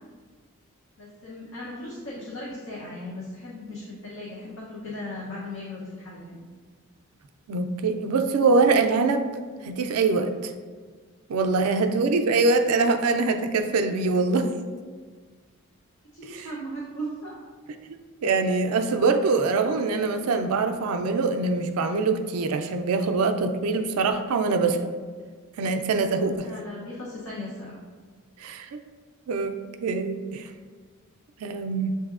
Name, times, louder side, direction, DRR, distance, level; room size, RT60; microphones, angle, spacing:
voice 1, 1.0-6.4 11.6-11.8 16.1-17.4 26.0-27.8, left 1 dB, 60° left, -6 dB, 0.8 m, -37 dB
voice 2, 7.5-9.3 9.6-10.5 11.3-14.5 17.9-24.8 25.6-26.5 28.4-28.7 29.3-30.5 31.4-31.9, right 4 dB, 85° right, 7 dB, 0.4 m, -24 dB
7.1 x 2.6 x 2.4 m, 1.5 s
head